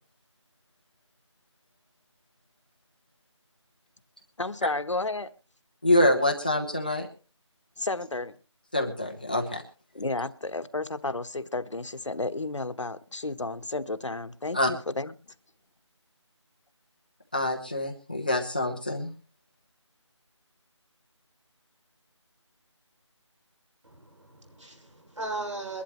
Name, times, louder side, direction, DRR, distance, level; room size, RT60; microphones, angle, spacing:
voice 1, 4.4-5.3 7.8-8.3 9.9-15.1, left 2 dB, 75° left, 11 dB, 1.2 m, -32 dB
voice 2, 5.8-7.1 8.7-9.6 14.5-14.7 17.3-19.1, left 1 dB, 15° left, 2 dB, 0.9 m, -25 dB
voice 3, 23.8-25.8, right 2 dB, 75° right, 3 dB, 6.4 m, -37 dB
22.5 x 11.5 x 3.1 m, 0.33 s
figure-of-eight pair, 180°, 16 cm